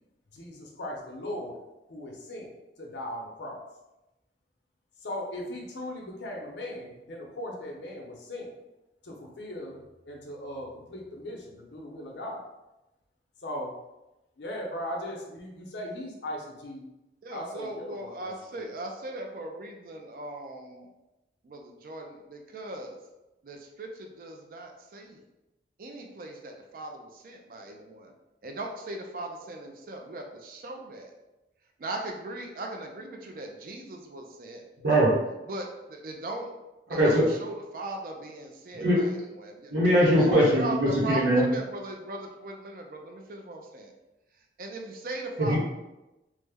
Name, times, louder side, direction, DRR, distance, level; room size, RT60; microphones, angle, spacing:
voice 1, 0.3-1.6 1.9-2.5 2.8-3.6 5.0-8.5 9.0-12.5 13.4-13.8 14.4-16.9 17.3-18.3 18.6-18.7, left 1 dB, 85° left, -1 dB, 0.7 m, -38 dB
voice 2, 17.2-20.9 21.4-23.0 23.4-25.2 25.8-28.1 28.4-31.1 31.8-34.7 35.5-36.6 36.9-39.8 40.2-40.3 40.6-43.9 44.6-45.6, right 2 dB, 50° right, 2 dB, 0.4 m, -39 dB
voice 3, 34.8-35.1 36.9-37.2 38.7-39.0 39.7-41.4 45.4-45.6, equal, 90° right, -7 dB, 1.0 m, -21 dB
3.1 x 2.1 x 3.4 m, 0.99 s
head